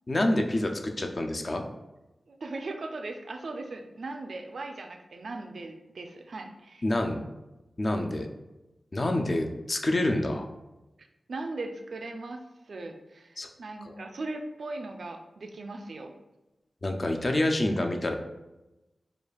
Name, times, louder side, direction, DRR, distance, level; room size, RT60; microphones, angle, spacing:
voice 1, 0.1-1.6 6.8-7.2 7.8-8.3 8.9-10.5 13.4-13.5 13.9-14.0 16.8-18.1, left 1 dB, 45° left, 3 dB, 0.4 m, -27 dB
voice 2, 2.3-6.8 11.3-16.1, right 2 dB, 75° right, 5 dB, 0.3 m, -38 dB
4.9 x 2.4 x 2.3 m, 1.0 s
wide cardioid pair, 70°, 0 cm